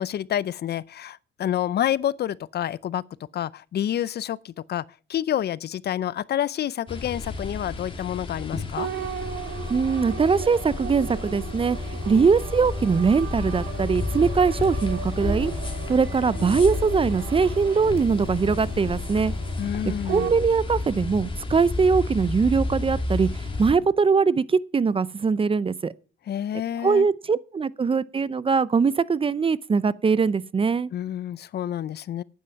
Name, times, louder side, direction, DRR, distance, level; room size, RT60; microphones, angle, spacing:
voice 1, 0.0-3.0 3.3-4.8 5.1-8.9 19.6-20.3 26.3-27.1 30.9-32.2, left 11 dB, 55° left, 0.5 m, -28 dB
sound 1, 6.9-23.7, left 3 dB, 25° left, 2.5 m, -31 dB
sound 2, 8.8-20.4, right 7 dB, 80° right, 3.2 m, -37 dB
voice 2, 9.7-11.8 12.1-15.5 15.9-19.3 19.8-25.9 26.8-30.9, right 5 dB, 25° right, 0.5 m, -22 dB
10.5 x 9.4 x 5.8 m
cardioid pair, 90°, 20 cm